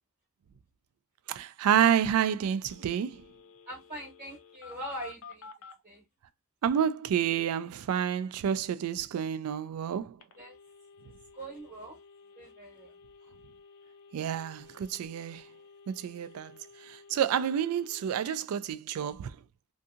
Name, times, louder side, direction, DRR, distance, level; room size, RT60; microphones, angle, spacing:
voice 1, 1.3-3.2 6.6-10.2 14.1-15.5 15.9-16.6 16.8-19.4, right 9 dB, 90° right, 0.3 m, -29 dB
Telephone, 2.7-5.8 10.2-18.4, left 5 dB, 85° left, 0.5 m, -53 dB
voice 2, 3.7-5.5 5.8-6.0 10.4-10.6 11.3-12.0 12.4-12.9, right 1 dB, 40° right, 1.0 m, -42 dB
2.6 x 2.6 x 2.4 m
head